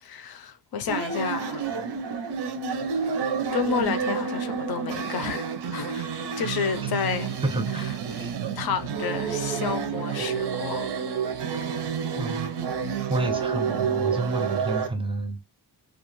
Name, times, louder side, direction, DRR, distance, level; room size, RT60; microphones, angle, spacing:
voice 1, 0.0-1.7 3.5-7.4 8.1-8.2 8.6-10.9, left 6 dB, 65° left, 0.5 m, -30 dB
sound 1, 0.9-14.9, right 6 dB, 80° right, 0.6 m, -29 dB
voice 2, 7.4-8.3 12.1-12.5 13.1-15.4, right 2 dB, 15° right, 0.4 m, -30 dB
2.3 x 2.3 x 2.9 m
wide cardioid pair, 120°, 40 cm